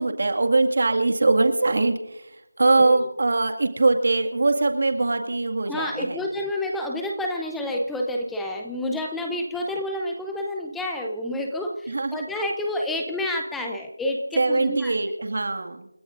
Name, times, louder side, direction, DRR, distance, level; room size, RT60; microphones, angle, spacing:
voice 1, 0.0-6.2 11.9-12.3 14.4-15.9, right 3 dB, 50° right, 5 dB, 2.0 m, -22 dB
voice 2, 2.8-3.1 5.7-14.9, left 1 dB, ahead, 1 dB, 0.7 m, -29 dB
29.0 x 14.5 x 2.6 m, 0.86 s
figure-of-eight pair, 175°, 0 cm